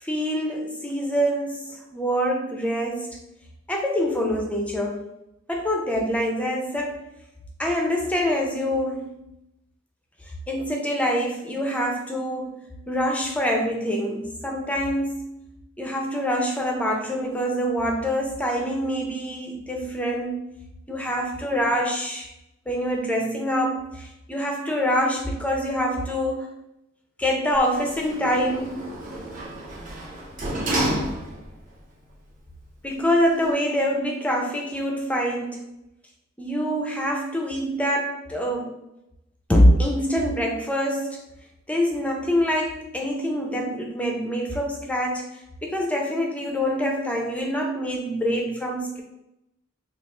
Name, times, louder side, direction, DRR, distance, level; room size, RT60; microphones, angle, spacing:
voice 1, 0.0-3.2 3.7-5.0 5.5-7.0 7.6-9.1 10.5-15.3 15.8-20.4 20.9-22.3 22.7-26.5 27.2-28.7 32.8-35.6 36.4-38.7 39.5-41.2 41.7-45.3 45.6-49.0, equal, 5° left, 1 dB, 0.5 m, -25 dB
Sliding door, 27.5-31.7 32.1-32.2, right 1 dB, 40° right, 0.7 m, -30 dB
3.4 x 2.4 x 3.0 m, 0.85 s
head